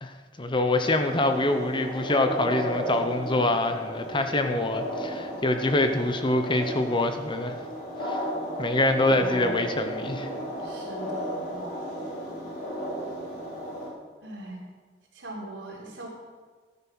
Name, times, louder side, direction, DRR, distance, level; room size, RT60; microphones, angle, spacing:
voice 1, 0.0-7.6 8.1-8.2 8.6-10.3, left 2 dB, 25° left, 7 dB, 0.9 m, -25 dB
sound 1, 0.8-13.9, equal, 50° left, 4.0 m, -34 dB
voice 2, 9.1-9.5 10.6-11.6 14.2-14.6 15.1-16.1, right 2 dB, 80° right, -3 dB, 3.9 m, -40 dB
13.5 x 9.5 x 6.2 m, 1.5 s
head